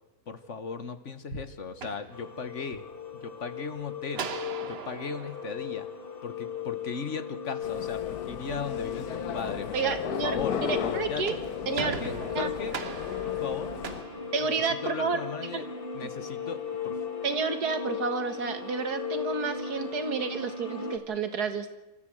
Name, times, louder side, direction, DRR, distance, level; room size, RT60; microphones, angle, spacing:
voice 1, 0.3-2.8 3.1-4.3 4.6-5.9 6.2-11.4 11.8-12.7 13.2-13.8 14.4-14.5 14.8-15.7 15.9-17.0, left 5 dB, 50° left, 11 dB, 1.4 m, -37 dB
sound 1, 1.6-2.8 4.1-6.6 11.0-15.1, right 6 dB, 45° right, 1.2 m, -41 dB
sound 2, 2.1-21.0, left 7 dB, 35° left, 1.8 m, -37 dB
sound 3, 7.6-14.0, left 9 dB, 75° left, 1.4 m, -35 dB
voice 2, 9.7-11.3 11.7-11.9 12.4-12.5 14.3-15.2 15.5-15.7 17.2-21.7, right 5 dB, 75° right, 9 dB, 2.2 m, -30 dB
28.0 x 13.5 x 7.8 m, 1.0 s
omnidirectional pair, 1.7 m